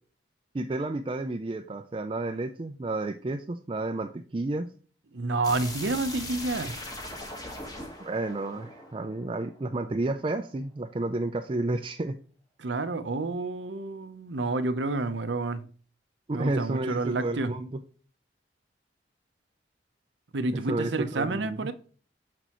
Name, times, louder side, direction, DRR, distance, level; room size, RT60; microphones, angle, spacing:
voice 1, 0.5-4.7 8.0-12.2 16.3-17.7 20.7-21.6, right 2 dB, 30° right, 0.4 m, -31 dB
voice 2, 5.1-6.8 12.6-15.6 16.3-17.5 20.3-21.7, right 3 dB, 90° right, 0.8 m, -29 dB
sound 1, 5.4-10.2, left 1 dB, 20° left, 1.4 m, -40 dB
6.7 x 6.1 x 3.0 m
head